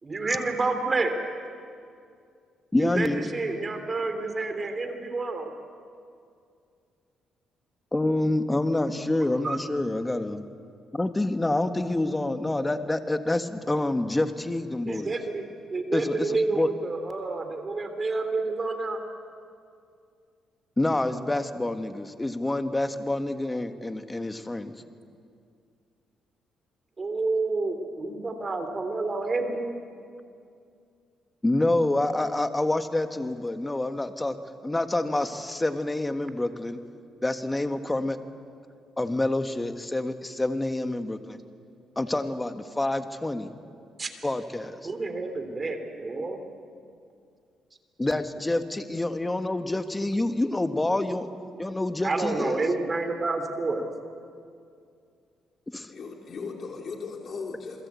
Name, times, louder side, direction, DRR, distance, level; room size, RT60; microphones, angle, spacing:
voice 1, 0.0-1.1 2.8-5.5 9.4-9.6 14.9-15.4 15.7-19.0 27.0-29.8 44.0-44.1 44.8-46.4 52.0-53.8, right 3 dB, 30° right, 7 dB, 3.3 m, -29 dB
voice 2, 2.7-3.3 7.9-10.4 10.9-15.1 15.9-16.7 20.8-24.7 31.4-34.4 34.6-36.8 37.2-38.2 39.0-41.4 41.9-43.5 44.2-44.8 48.0-51.3 51.6-52.6 55.7-55.9, left 2 dB, 15° left, 8 dB, 1.6 m, -27 dB
voice 3, 55.9-57.9, left 4 dB, 50° left, 2 dB, 3.0 m, -37 dB
28.0 x 21.5 x 8.5 m, 2.3 s
cardioid pair, 95°, 0 cm